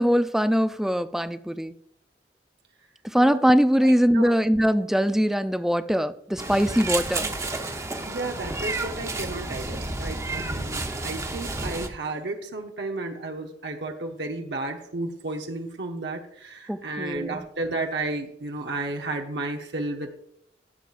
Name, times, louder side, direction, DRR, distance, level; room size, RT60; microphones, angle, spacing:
voice 1, 0.0-1.7 3.0-7.3 16.7-17.5, equal, ahead, 11 dB, 0.4 m, -22 dB
voice 2, 3.8-4.4 8.1-20.1, right 2 dB, 70° right, 2 dB, 1.0 m, -33 dB
Meow, 6.4-11.9, right 2 dB, 20° right, 0.9 m, -31 dB
14.5 x 7.2 x 2.5 m, 0.73 s
head